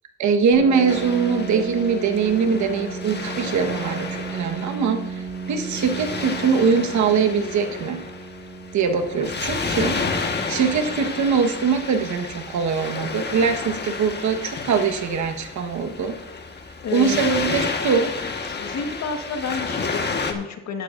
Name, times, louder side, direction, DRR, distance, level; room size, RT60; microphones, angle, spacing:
voice 1, 0.2-4.1 4.3-5.0 5.5-8.0 8.7-10.0 10.5-16.1 16.9-18.1, right 6 dB, 70° right, 6 dB, 1.4 m, -22 dB
Piano, 0.5-15.9, right 4 dB, 25° right, 4.5 m, -37 dB
Waves surf, 0.9-20.3, left 4 dB, 35° left, 1.4 m, -31 dB
voice 2, 16.8-17.3 18.5-20.8, left 5 dB, 65° left, 6 dB, 1.5 m, -30 dB
13.5 x 11.5 x 2.6 m, 0.90 s
cardioid pair, 90°, 30 cm